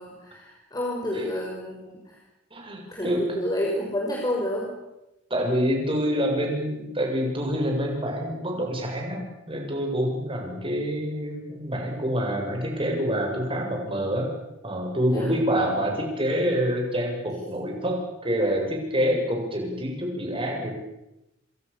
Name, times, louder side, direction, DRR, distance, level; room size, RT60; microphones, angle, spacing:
voice 1, 0.0-2.2 2.9-4.7 15.1-15.3, left 1 dB, 20° left, -3 dB, 6.0 m, -30 dB
voice 2, 2.5-3.4 5.3-14.3 14.6-20.7, equal, 25° right, 1 dB, 7.5 m, -27 dB
28.5 x 26.0 x 7.2 m, 0.93 s
head